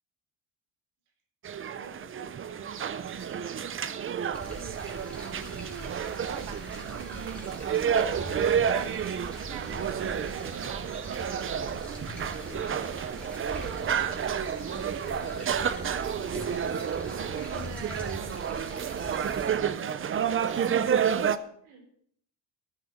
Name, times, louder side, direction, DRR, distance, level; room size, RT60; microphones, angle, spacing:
sound 1, 1.4-21.4, right 8 dB, 30° right, 0.5 m, -30 dB
voice 1, 1.7-3.4 11.9-15.5 20.2-21.8, right 4 dB, 85° right, 3 dB, 4.9 m, -51 dB
sound 2, 4.3-19.6, equal, ahead, 3.4 m, -42 dB
voice 2, 5.0-11.5 16.7-19.4 19.7-20.1, right 11 dB, 60° right, 11 dB, 0.8 m, -45 dB
15.5 x 9.2 x 5.9 m, 0.64 s
cardioid pair, 165°, 48 cm